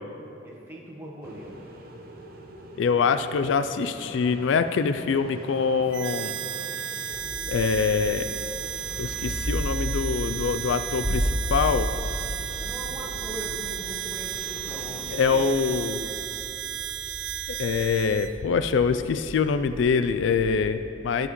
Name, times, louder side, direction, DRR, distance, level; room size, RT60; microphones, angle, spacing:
voice 1, 0.4-1.7 12.6-16.3, equal, 10° right, -3 dB, 1.2 m, -40 dB
sound 1, 1.2-15.5, right 1 dB, 50° right, 0.8 m, -44 dB
voice 2, 2.8-6.4 7.5-8.4 9.0-11.9 15.1-16.0 17.5-21.3, left 5 dB, 80° left, 10 dB, 0.3 m, -24 dB
Harmonica, 5.9-18.3, right 11 dB, 70° right, 0.3 m, -34 dB
sound 2, 7.1-20.7, equal, 5° left, 0.9 m, -34 dB
13.0 x 7.8 x 3.1 m, 2.8 s
head